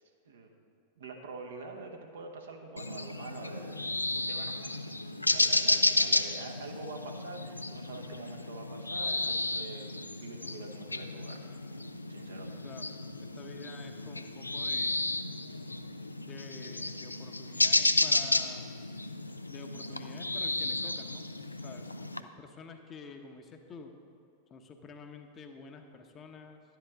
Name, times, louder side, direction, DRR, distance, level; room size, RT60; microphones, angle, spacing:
voice 1, 1.0-3.9 4.3-4.8 5.2-9.9 10.2-11.5 12.1-12.6, right 3 dB, 65° right, 2 dB, 1.1 m, -45 dB
sound 1, 2.8-22.2, left 2 dB, 85° left, 0.4 m, -32 dB
voice 2, 12.6-15.0 16.2-18.7 19.4-21.2 21.6-23.9 24.5-26.6, left 4 dB, 25° left, 5 dB, 0.9 m, -49 dB
11.5 x 10.0 x 3.4 m, 2.5 s
figure-of-eight pair, 90°, 0 cm